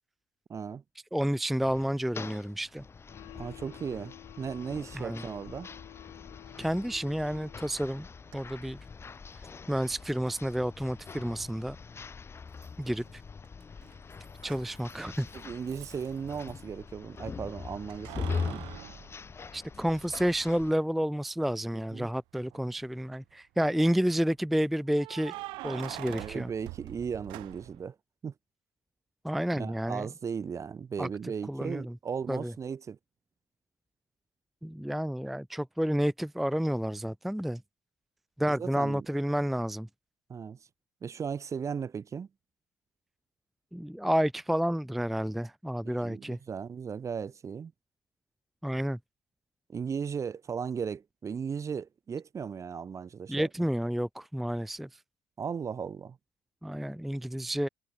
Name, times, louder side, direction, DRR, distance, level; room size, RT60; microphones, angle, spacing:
voice 1, 0.5-0.8 3.3-5.7 15.3-18.7 21.9-22.1 26.1-28.0 28.2-28.3 29.5-33.0 38.5-39.1 40.3-40.6 41.0-42.3 45.8-47.7 49.7-53.5 55.4-56.2, right 6 dB, 35° right, 0.9 m, -36 dB
voice 2, 1.1-2.8 4.9-5.2 6.6-8.1 8.3-8.8 9.7-11.8 12.8-13.2 14.4-15.3 19.5-25.3 25.6-26.5 29.2-30.1 31.0-31.1 31.5-31.9 32.3-32.5 34.6-37.6 38.4-39.9 43.7-46.4 48.6-49.0 53.3-55.0 56.6-57.7, equal, ahead, 0.4 m, -30 dB
sound 1, 1.6-20.7, left 5 dB, 30° left, 0.8 m, -42 dB
sound 2, 3.1-7.9, left 19 dB, 70° left, 4.8 m, -51 dB
Keys jangling, 8.3-8.4 10.3-10.4 12.6-13.2 13.4-16.6 17.9-20.0 20.5-20.6 22.4-22.9 24.9-27.9, right 22 dB, 70° right, 2.8 m, -45 dB
hypercardioid pair, 55°, 9 cm